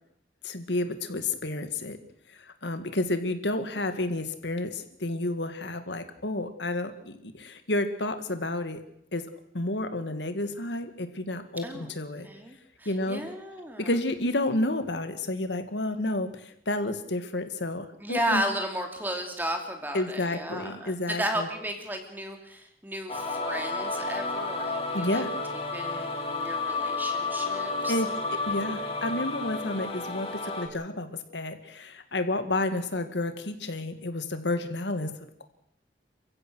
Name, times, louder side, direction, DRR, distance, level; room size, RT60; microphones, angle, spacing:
voice 1, 0.4-2.0 2.4-8.8 9.1-9.2 9.5-12.3 12.9-13.2 13.8-18.4 19.9-21.5 24.9-25.3 27.9-28.1 28.5-35.1, left 2 dB, 85° left, 8 dB, 2.0 m, -30 dB
voice 2, 12.2-13.9 18.0-25.2 25.7-28.2, right 1 dB, 10° right, 4 dB, 2.9 m, -34 dB
sound 1, 23.1-30.7, left 3 dB, 35° left, 2.8 m, -31 dB
29.0 x 15.5 x 6.4 m, 0.71 s
head